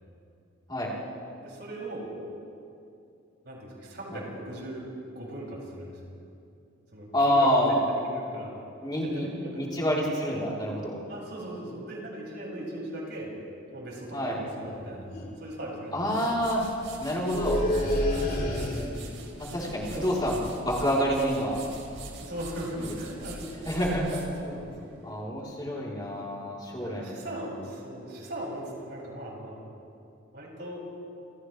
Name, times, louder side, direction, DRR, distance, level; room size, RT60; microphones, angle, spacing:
voice 1, 1.4-2.1 3.4-6.0 6.9-8.5 9.0-9.8 11.1-13.3 13.7-15.1 15.4-16.2 18.1-18.8 19.6-20.1 22.2-24.1 24.4-24.9 25.3-25.7 26.7-29.6 30.3-30.8, right 1 dB, 55° right, -4 dB, 6.7 m, -39 dB
voice 2, 7.1-7.8 8.8-9.3 9.5-11.0 14.1-14.4 15.9-16.6 17.0-17.6 19.4-21.6 23.7-24.2 25.0-27.1, equal, 20° left, -5 dB, 3.7 m, -27 dB
sound 1, 14.6-14.8 15.1-15.5 17.2-19.2, left 1 dB, 50° left, 3.9 m, -28 dB
sound 2, 15.8-25.2, right 2 dB, 75° right, 3.7 m, -44 dB
28.5 x 28.0 x 3.3 m, 2.6 s
head